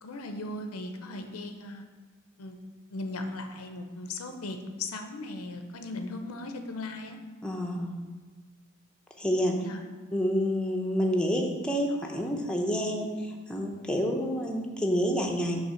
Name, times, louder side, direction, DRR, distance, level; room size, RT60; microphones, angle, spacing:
voice 1, 0.0-1.8 2.4-2.6 2.9-7.2 9.6-9.8, left 2 dB, 85° left, 6 dB, 0.6 m, -37 dB
voice 2, 7.4-7.9 9.2-9.6 10.1-15.6, equal, 5° left, 0 dB, 0.6 m, -28 dB
5.7 x 3.3 x 5.6 m, 1.4 s
head